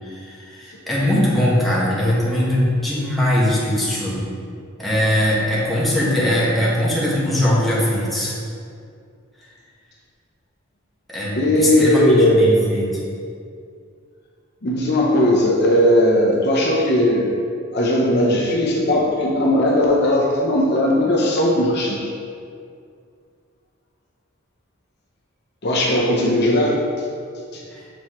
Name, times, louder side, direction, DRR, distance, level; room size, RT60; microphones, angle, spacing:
voice 1, 0.0-4.2 4.8-8.4 11.1-12.9 27.7-27.8, left 1 dB, ahead, -8 dB, 1.4 m, -20 dB
voice 2, 11.3-12.5 14.6-17.3 17.7-22.1 25.6-26.8 27.5-27.6, left 1 dB, 55° left, -2 dB, 0.8 m, -17 dB
7.8 x 4.3 x 3.1 m, 2.3 s
head